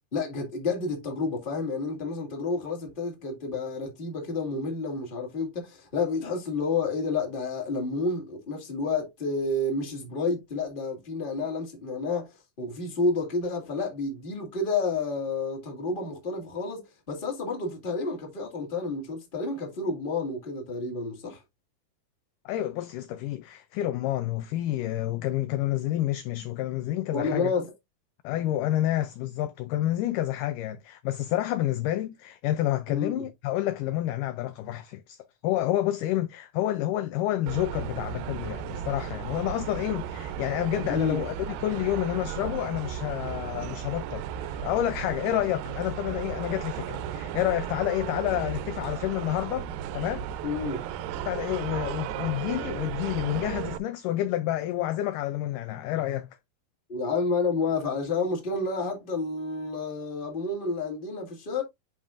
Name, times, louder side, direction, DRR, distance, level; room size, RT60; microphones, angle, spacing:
voice 1, 0.1-21.4 27.1-27.6 32.9-33.3 40.9-41.2 50.4-50.8 56.9-61.6, left 3 dB, 20° left, 1.5 m, -30 dB
voice 2, 22.5-27.5 28.2-50.3 51.3-56.4, left 13 dB, 85° left, 1.9 m, -29 dB
sound 1, 37.5-53.8, right 9 dB, 80° right, 2.3 m, -35 dB
10.5 x 4.1 x 2.5 m
omnidirectional pair, 4.4 m